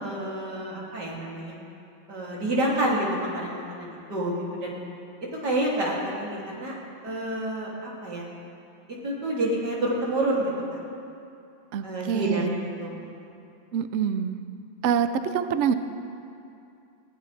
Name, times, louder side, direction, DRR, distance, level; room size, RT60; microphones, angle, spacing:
voice 1, 0.0-1.6 2.1-4.7 5.3-6.8 7.0-8.3 9.0-10.8 11.8-13.4, right 1 dB, 60° right, -4 dB, 3.3 m, -29 dB
voice 2, 11.7-12.6 13.7-14.4 14.8-15.7, right 7 dB, 80° right, 10 dB, 0.6 m, -25 dB
19.0 x 16.5 x 3.3 m, 2.6 s
omnidirectional pair, 2.0 m